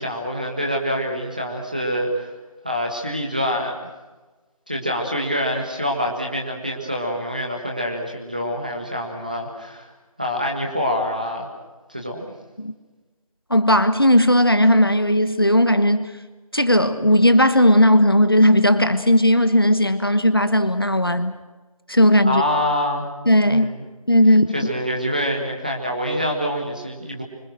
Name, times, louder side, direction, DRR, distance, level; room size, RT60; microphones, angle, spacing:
voice 1, 0.0-2.3 2.6-3.7 4.7-9.9 10.2-11.5 11.9-12.3 22.2-23.1 23.4-23.8 24.5-27.2, equal, 15° right, 0 dB, 1.6 m, -25 dB
voice 2, 13.5-16.1 16.5-21.4 21.9-22.4 23.3-23.7 24.1-24.5, left 1 dB, 40° left, 11 dB, 1.2 m, -16 dB
25.5 x 25.5 x 6.2 m, 1.2 s
figure-of-eight pair, 175°, 19 cm